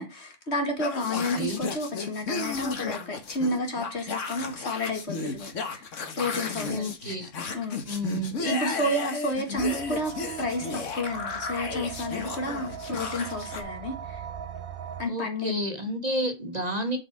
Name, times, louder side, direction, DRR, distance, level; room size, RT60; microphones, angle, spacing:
voice 1, 0.0-5.9 6.2-6.9 7.5-7.8 8.4-14.2 15.0-15.5, left 1 dB, 60° left, 2.4 m, -31 dB
sound 1, 0.8-13.6, left 4 dB, 80° left, 1.6 m, -34 dB
voice 2, 1.1-1.6 6.5-7.3 7.8-8.7 9.5-9.6 15.0-17.0, equal, 35° right, 1.5 m, -31 dB
sound 2, 9.6-15.0, right 7 dB, 55° right, 0.8 m, -39 dB
7.8 x 4.9 x 4.7 m
omnidirectional pair, 1.3 m